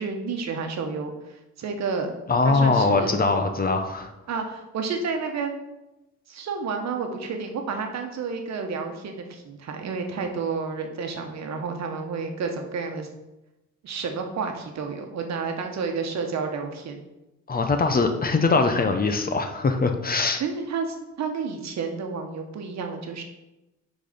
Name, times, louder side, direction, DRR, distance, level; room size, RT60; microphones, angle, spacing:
voice 1, 0.0-2.1 2.4-3.2 4.3-5.6 6.3-13.1 13.8-17.1 20.4-23.2, right 5 dB, 60° right, 4 dB, 1.1 m, -30 dB
voice 2, 2.3-4.1 17.5-20.4, left 3 dB, 30° left, 6 dB, 0.8 m, -22 dB
6.4 x 4.1 x 5.1 m, 0.96 s
cardioid pair, 90°, 30 cm